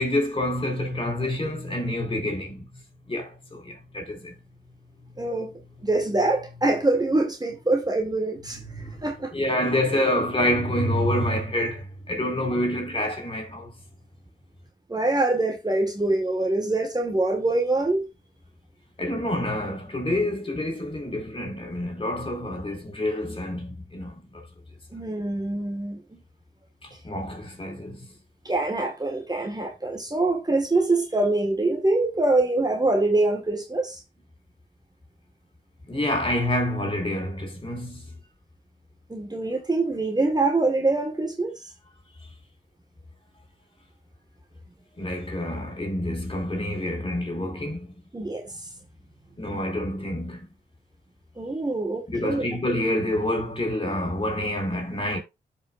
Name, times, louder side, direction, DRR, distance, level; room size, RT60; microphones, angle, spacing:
voice 1, 0.0-2.7 3.1-4.3 8.7-9.1 9.3-13.7 19.0-24.4 26.8-28.1 35.9-38.1 45.0-47.9 49.4-50.5 52.1-55.2, left 1 dB, 30° left, 3.9 m, -27 dB
voice 2, 5.2-5.5 5.8-9.3 14.9-18.1 24.9-26.2 28.5-34.0 39.1-41.6 48.1-48.7 51.4-52.5, right 2 dB, 25° right, 1.6 m, -24 dB
12.5 x 5.2 x 2.5 m
cardioid pair, 45°, 17 cm